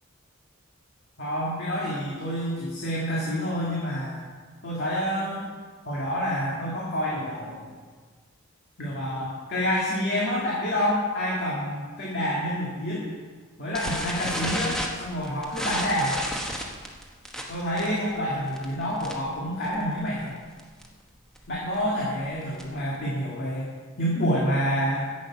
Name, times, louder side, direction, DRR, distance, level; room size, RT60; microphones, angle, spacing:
voice 1, 1.2-4.3 4.6-5.5 5.8-7.7 8.8-13.1 13.6-16.2 17.5-20.3 21.5-23.7 24.0-25.1, equal, 50° left, -5 dB, 2.0 m, -28 dB
sound 1, 13.7-19.4 19.6-19.9 20.2-20.3 20.6-20.9 21.4-22.9, equal, 5° left, 1.0 m, -33 dB
10.0 x 8.7 x 5.9 m, 1.5 s
head